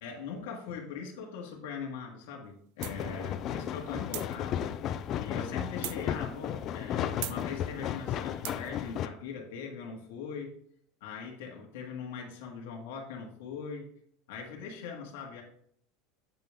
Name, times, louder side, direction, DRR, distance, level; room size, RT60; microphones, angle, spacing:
voice 1, 0.0-4.7 5.2-10.5 11.0-13.9 14.3-15.4, left 5 dB, 80° left, 0 dB, 1.7 m, -41 dB
sound 1, 2.8-9.1, left 10 dB, 30° left, 0.4 m, -34 dB
sound 2, 2.8-3.0 4.1-4.4 5.8-6.0 7.2-7.4 8.4-8.7, right 16 dB, 60° right, 0.4 m, -38 dB
8.0 x 5.4 x 3.6 m, 0.66 s
supercardioid pair, 175°, 0 cm